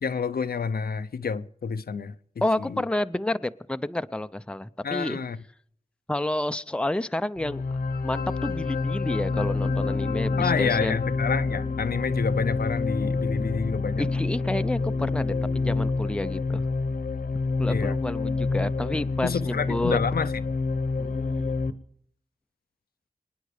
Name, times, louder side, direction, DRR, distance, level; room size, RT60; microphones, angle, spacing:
voice 1, 0.0-2.1 2.6-2.8 4.8-5.4 10.4-14.0 17.7-18.0 19.2-20.3, left 5 dB, 90° left, 0.7 m, -28 dB
voice 2, 2.4-5.2 6.1-7.6 8.0-11.0 14.0-16.7 17.6-20.0 21.0-21.6, left 1 dB, 5° left, 0.6 m, -30 dB
sound 1, 7.4-21.7, left 3 dB, 70° left, 1.1 m, -27 dB
sound 2, 9.3-15.5, equal, 70° right, 3.8 m, -46 dB
sound 3, 9.7-16.5, equal, 20° right, 2.4 m, -44 dB
26.5 x 9.8 x 5.0 m
wide cardioid pair, 75°, 15 cm